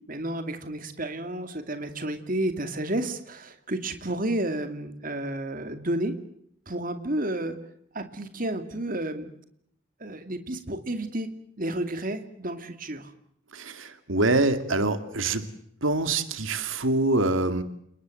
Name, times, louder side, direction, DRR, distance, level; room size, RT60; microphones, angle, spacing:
voice 1, 0.1-6.1 6.7-7.6 7.9-9.3 10.0-11.3 11.6-13.1, right 1 dB, 45° right, 8 dB, 2.5 m, -31 dB
voice 2, 13.5-15.5 15.8-17.6, right 2 dB, 80° right, 10 dB, 2.4 m, -25 dB
29.5 x 20.0 x 7.8 m, 0.70 s
head